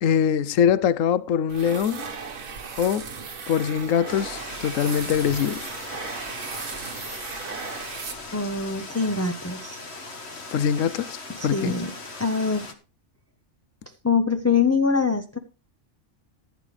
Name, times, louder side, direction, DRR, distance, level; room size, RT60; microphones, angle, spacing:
voice 1, 0.0-2.1 2.8-3.1 3.5-5.7 10.5-11.2 11.4-11.7, left 8 dB, 75° left, 1.1 m, -23 dB
sound 1, 1.5-8.6, right 5 dB, 80° right, 1.8 m, -36 dB
sound 2, 4.1-12.7, left 3 dB, 50° left, 1.7 m, -39 dB
voice 2, 8.3-9.8 11.3-11.9 12.2-12.7 14.0-15.4, left 5 dB, 15° left, 0.6 m, -24 dB
14.5 x 9.6 x 3.3 m
omnidirectional pair, 1.4 m